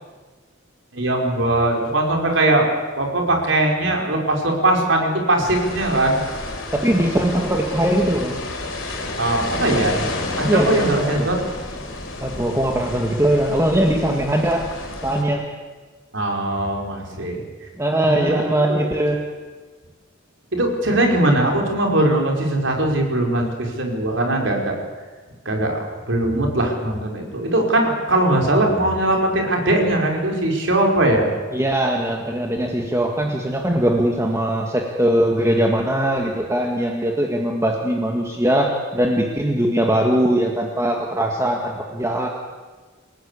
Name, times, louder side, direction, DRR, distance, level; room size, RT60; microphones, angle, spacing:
voice 1, 0.9-2.7 2.9-6.2 9.2-10.0 10.4-11.4 16.1-17.4 18.0-18.4 18.7-18.8 20.5-24.7 25.4-25.8 26.1-31.3, right 1 dB, 65° right, 1 dB, 5.3 m, -20 dB
sound 1, 5.4-15.2, left 2 dB, 75° left, 5.2 m, -30 dB
voice 2, 6.7-8.4 10.4-11.3 12.2-14.7 15.0-15.4 17.8-19.2 31.5-42.3, right 1 dB, 15° right, 1 dB, 2.0 m, -20 dB
29.5 x 17.5 x 8.5 m, 1.4 s
head